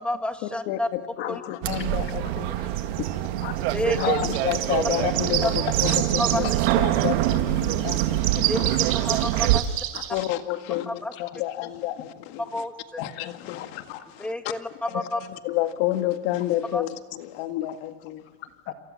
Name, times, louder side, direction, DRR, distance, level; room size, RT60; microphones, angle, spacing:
voice 1, 0.0-0.9 1.3-1.4 3.6-4.2 5.4-5.5 6.2-6.5 8.5-9.8 10.9-11.1 12.4-13.0 14.2-15.2 16.7-16.8, left 1 dB, 5° left, 7 dB, 1.5 m, -30 dB
voice 2, 0.7-2.7 4.0-8.7 9.9-12.6 13.0-14.3 14.9-18.3, left 14 dB, 70° left, 8 dB, 1.9 m, -30 dB
voice 3, 1.2-1.9 2.2-4.4 6.9-7.0 8.3-8.4 8.7-9.0 9.5-9.6 10.5-10.6 11.2-11.4 13.5-13.7 17.7-17.8 18.4-18.7, left 10 dB, 40° left, 6 dB, 2.0 m, -39 dB
sound 1, 1.6-9.6, right 14 dB, 80° right, 1.8 m, -25 dB
sound 2, 2.7-7.3 7.6-10.3, right 14 dB, 45° right, 4.2 m, -29 dB
28.0 x 27.5 x 7.5 m, 1.2 s
cardioid pair, 165°, 31 cm